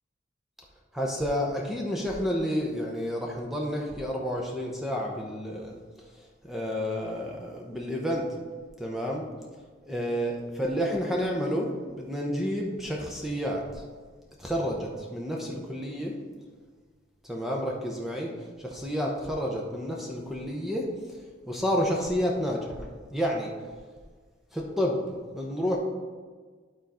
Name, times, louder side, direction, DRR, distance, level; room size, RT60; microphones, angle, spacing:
voice 1, 0.9-5.8 6.4-8.2 8.8-9.3 9.9-11.7 12.0-13.6 14.4-16.1 17.2-18.3 18.6-20.9 21.5-23.5 24.5-25.0 25.3-25.8, equal, ahead, -1 dB, 0.7 m, -30 dB
11.5 x 3.9 x 4.2 m, 1.5 s
head